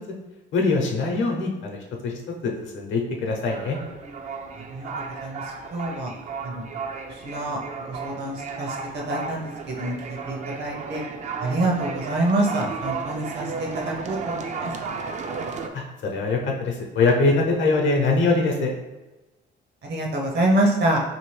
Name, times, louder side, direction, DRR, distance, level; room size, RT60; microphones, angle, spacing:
voice 1, 0.5-3.8 15.7-18.7, left 3 dB, 70° left, 1 dB, 0.7 m, -23 dB
sound 1, 3.5-15.7, right 4 dB, 40° right, 0.4 m, -34 dB
voice 2, 5.7-6.1 6.4-6.6 7.2-7.6 7.9-11.0 11.4-14.7 19.8-21.0, right 1 dB, 60° right, 0 dB, 0.8 m, -26 dB
2.8 x 2.7 x 3.2 m, 1.1 s
cardioid pair, 90°, 20 cm